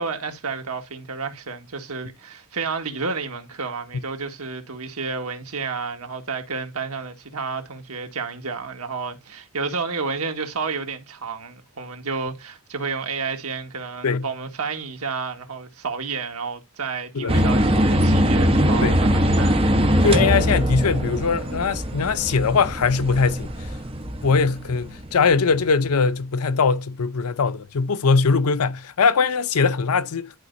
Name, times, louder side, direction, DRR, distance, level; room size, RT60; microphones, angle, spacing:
voice 1, 0.0-19.6, right 4 dB, 80° right, 1.7 m, -31 dB
sound 1, 17.3-25.3, equal, 25° right, 1.1 m, -21 dB
voice 2, 20.0-23.7 24.2-30.3, left 5 dB, 85° left, 0.6 m, -21 dB
11.5 x 5.0 x 2.6 m
head